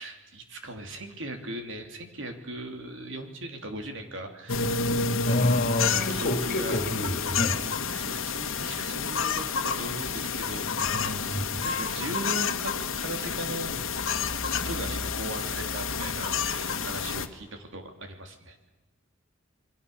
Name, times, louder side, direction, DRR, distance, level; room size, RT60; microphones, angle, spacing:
voice 1, 0.0-4.7 5.3-5.4 5.9-6.8 7.9-10.7 11.0-13.8 14.4-18.7, right 1 dB, 65° right, 5 dB, 3.3 m, -39 dB
sound 1, 4.5-17.3, left 5 dB, 80° left, 1.6 m, -29 dB
voice 2, 5.2-7.6 10.8-11.5, left 1 dB, 45° left, 7 dB, 2.5 m, -28 dB
29.0 x 23.0 x 7.0 m, 1.2 s
head